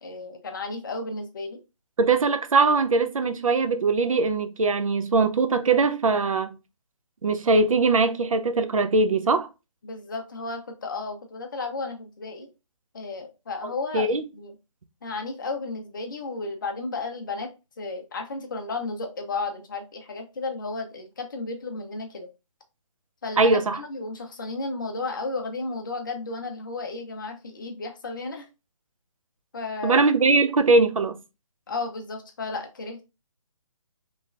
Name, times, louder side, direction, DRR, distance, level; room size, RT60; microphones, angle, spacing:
voice 1, 0.0-1.6 9.8-12.5 12.9-14.5 15.0-17.5 17.8-22.3 23.2-28.5 29.5-30.0 31.7-33.0, left 3 dB, 40° left, 0.7 m, -33 dB
voice 2, 2.0-6.5 7.2-9.5 13.9-14.2 23.4-23.8 29.8-31.2, right 3 dB, 85° right, 0.6 m, -21 dB
3.6 x 3.1 x 2.4 m
hypercardioid pair, 170°, 17 cm